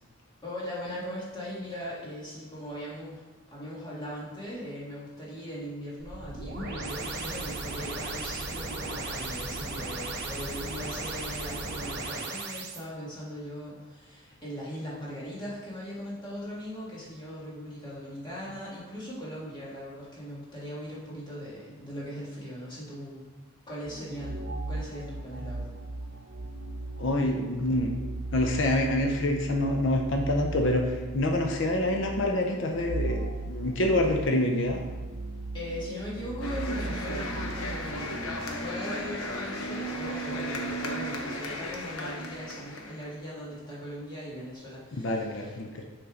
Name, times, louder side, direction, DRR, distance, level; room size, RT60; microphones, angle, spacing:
voice 1, 0.4-3.2 3.5-23.2 23.7-25.7 35.5-45.6, equal, 20° left, -7 dB, 1.9 m, -39 dB
sound 1, 6.0-12.8, right 3 dB, 50° right, 0.9 m, -36 dB
sound 2, 23.9-38.4, right 2 dB, 85° right, 0.7 m, -37 dB
voice 2, 27.0-27.9 28.3-34.8 45.0-45.8, left 1 dB, 60° left, 2 dB, 0.6 m, -26 dB
sound 3, 36.4-43.1, equal, 80° left, 0.9 m, -35 dB
7.0 x 5.3 x 3.7 m, 1.2 s
head